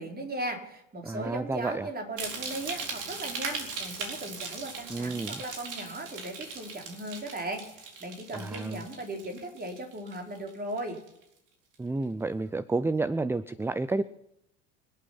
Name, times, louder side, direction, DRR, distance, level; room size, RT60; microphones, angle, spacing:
voice 1, 0.0-11.0, right 1 dB, 25° right, 2 dB, 4.5 m, -37 dB
voice 2, 1.0-1.9 4.9-5.4 8.3-8.8 11.8-14.0, right 3 dB, 5° right, 17 dB, 0.5 m, -30 dB
sound 1, 2.2-10.5 10.8-11.2 11.7-11.8, right 4 dB, 50° right, 4.5 m, -39 dB
25.5 x 8.7 x 5.8 m, 0.81 s
hypercardioid pair, 70°, 39 cm